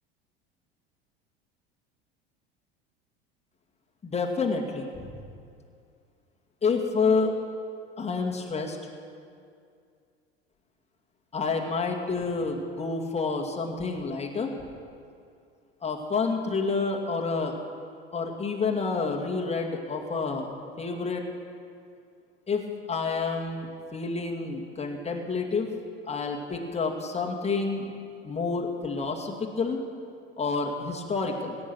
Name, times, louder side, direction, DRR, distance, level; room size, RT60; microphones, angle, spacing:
voice 1, 4.0-5.2 6.6-7.3 8.0-8.8 11.3-14.5 15.8-17.5 18.1-21.2 22.5-22.6 22.9-25.7 26.1-27.9 28.2-29.8 30.4-31.6, left 4 dB, 20° left, 0 dB, 2.1 m, -29 dB
17.0 x 8.8 x 6.1 m, 2.4 s
hypercardioid pair, 75°, 31 cm